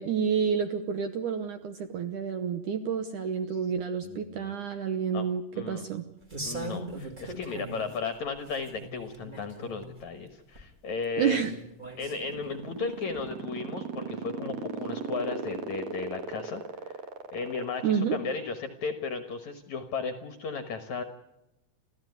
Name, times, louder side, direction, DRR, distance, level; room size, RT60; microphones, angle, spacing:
voice 1, 0.0-6.0 11.2-11.5 17.8-18.2, right 7 dB, 70° right, 8 dB, 1.9 m, -29 dB
voice 2, 4.0-4.8 5.1-5.2 5.5-5.9 6.4-11.4 12.0-16.6 17.3-21.0, left 4 dB, 60° left, 8 dB, 2.0 m, -35 dB
sound 1, 6.3-8.0 8.4-10.0 10.5-10.6 11.2-12.5 13.2-13.3, right 2 dB, 15° right, 1.6 m, -40 dB
sound 2, 11.8-18.4, right 6 dB, 50° right, 2.7 m, -36 dB
30.0 x 14.0 x 9.4 m, 0.89 s
omnidirectional pair, 4.8 m